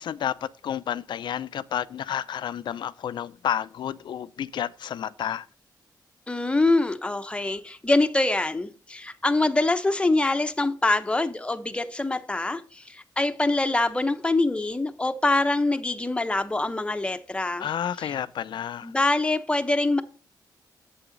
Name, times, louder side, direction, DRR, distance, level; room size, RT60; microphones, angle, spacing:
voice 1, 0.0-5.5 17.6-18.9, left 9 dB, 75° left, 0.5 m, -31 dB
voice 2, 6.3-17.7 18.0-18.1 18.8-20.0, left 2 dB, 15° left, 0.8 m, -24 dB
7.9 x 7.8 x 3.9 m
cardioid pair, 110°, 8 cm